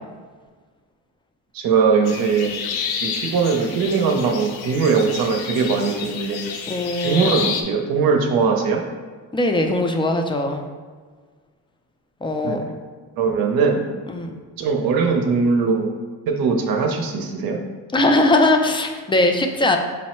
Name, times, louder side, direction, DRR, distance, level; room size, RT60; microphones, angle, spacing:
voice 1, 1.5-2.5 3.0-6.6 7.0-8.8 12.4-12.6 13.2-13.8 14.6-15.9 16.3-17.6, right 5 dB, 70° right, 2 dB, 0.7 m, -20 dB
sound 1, 2.1-7.6, left 6 dB, 85° left, 0.6 m, -30 dB
voice 2, 6.7-7.5 9.3-10.7 12.2-12.6 14.1-14.3 17.9-19.8, left 2 dB, 15° left, 4 dB, 0.3 m, -20 dB
5.3 x 2.1 x 4.2 m, 1.5 s
cardioid pair, 115°, 37 cm